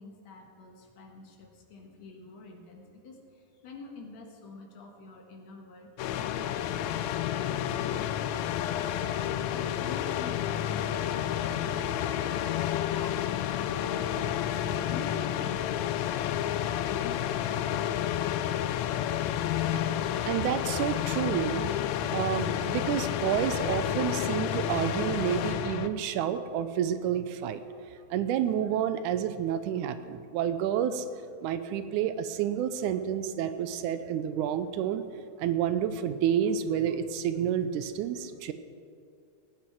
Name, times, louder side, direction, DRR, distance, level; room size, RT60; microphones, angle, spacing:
voice 1, 0.0-12.0 12.9-17.4, left 3 dB, 65° left, 2 dB, 2.4 m, -47 dB
sound 1, 6.0-25.9, left 11 dB, 80° left, 1.7 m, -30 dB
voice 2, 20.3-21.7 22.1-27.6 28.1-31.1 31.4-35.0 35.4-38.5, right 9 dB, 90° right, 11 dB, 2.1 m, -29 dB
18.5 x 8.7 x 4.6 m, 2.3 s
omnidirectional pair, 3.5 m